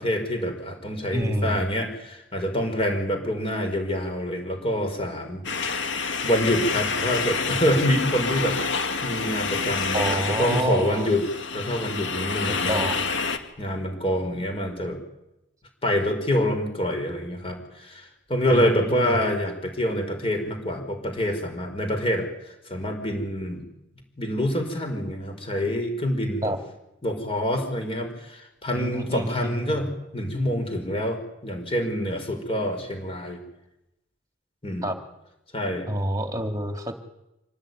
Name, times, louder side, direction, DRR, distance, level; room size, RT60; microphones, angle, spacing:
voice 1, 0.0-5.4 6.2-8.6 9.0-11.3 11.5-12.9 13.6-15.0 15.8-22.3 22.7-23.6 24.2-26.5 27.0-33.4 34.6-34.9 35.5-35.9, equal, 25° left, 5 dB, 5.0 m, -26 dB
voice 2, 1.1-1.7 9.9-11.1 12.5-13.0 18.5-19.2 26.4-26.6 28.7-29.9 34.8-35.0 35.9-37.0, right 1 dB, 15° right, 5 dB, 2.7 m, -28 dB
sound 1, 5.4-13.4, left 5 dB, 65° left, 2.1 m, -28 dB
26.0 x 19.0 x 9.5 m, 0.88 s
head